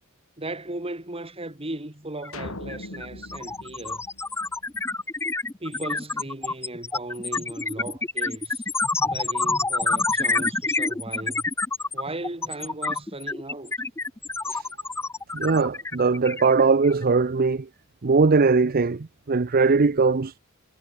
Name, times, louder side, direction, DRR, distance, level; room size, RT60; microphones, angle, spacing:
voice 1, 0.4-4.1 5.6-8.7 9.0-11.5 11.9-13.7, right 2 dB, 25° right, 3.6 m, -36 dB
sound 1, 2.2-2.4 2.7-17.0, left 3 dB, 10° left, 0.6 m, -28 dB
sound 2, 2.3-4.8, left 2 dB, 65° left, 4.9 m, -40 dB
voice 2, 15.3-17.7 18.0-20.4, right 4 dB, 45° right, 0.6 m, -20 dB
head